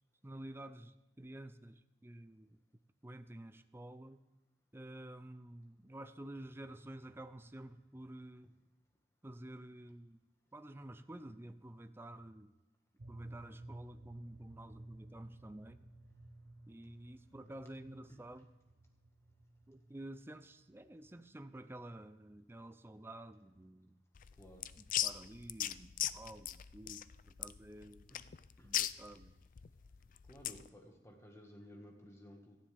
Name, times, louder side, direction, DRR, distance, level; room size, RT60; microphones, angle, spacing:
voice 1, 0.2-2.6 3.0-4.2 4.7-8.5 9.2-10.2 10.5-12.5 13.1-15.9 16.7-18.5 19.7-24.0 24.8-28.1 28.6-29.3, right 1 dB, 15° right, 10 dB, 0.5 m, -51 dB
sound 1, 13.0-21.5, right 1 dB, 65° right, 0.9 m, -54 dB
sound 2, 24.1-30.7, left 12 dB, 45° left, 0.4 m, -39 dB
voice 2, 30.3-32.6, equal, 15° left, 2 dB, 1.7 m, -56 dB
17.5 x 13.0 x 3.5 m, 1.1 s
head